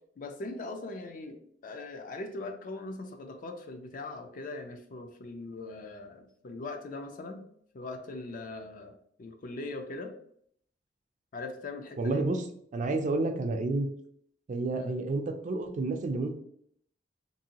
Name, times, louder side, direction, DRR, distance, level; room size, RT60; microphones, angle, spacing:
voice 1, 0.2-7.5 7.7-10.1 11.3-12.3 14.8-14.9, left 2 dB, 45° left, 5 dB, 0.4 m, -40 dB
voice 2, 12.0-12.4 12.7-13.9 14.5-16.4, right 2 dB, 45° right, 6 dB, 0.3 m, -30 dB
2.7 x 2.6 x 2.8 m, 0.67 s
head